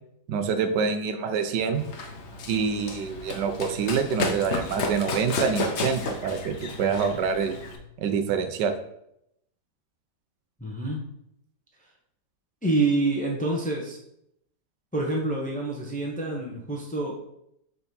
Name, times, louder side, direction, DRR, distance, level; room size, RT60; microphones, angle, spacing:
voice 1, 0.3-1.8 2.5-7.6 8.0-8.7, right 6 dB, 85° right, 8 dB, 1.3 m, -26 dB
Run, 1.7-7.8, left 3 dB, 55° left, 0.9 m, -32 dB
voice 2, 10.6-11.0 12.6-14.0 14.9-17.1, right 2 dB, 5° left, -1 dB, 0.6 m, -27 dB
4.7 x 4.0 x 5.3 m, 0.76 s
omnidirectional pair, 1.8 m